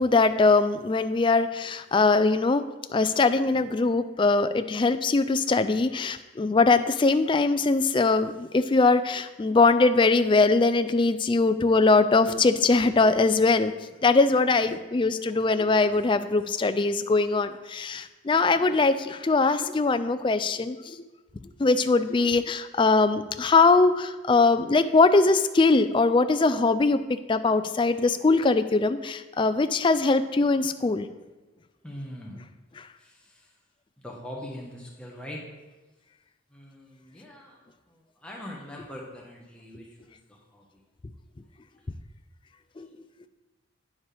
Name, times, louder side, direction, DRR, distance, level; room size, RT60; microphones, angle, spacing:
voice 1, 0.0-2.6 2.9-13.7 14.0-21.0 21.6-31.1 32.8-32.9 42.8-42.9, left 3 dB, 25° left, 10 dB, 0.3 m, -22 dB
voice 2, 31.8-32.4 33.0-33.1 34.0-35.4 36.5-37.6 38.2-39.8 40.5-40.6, equal, 5° left, -3 dB, 1.2 m, -41 dB
9.5 x 7.2 x 3.4 m, 1.1 s
head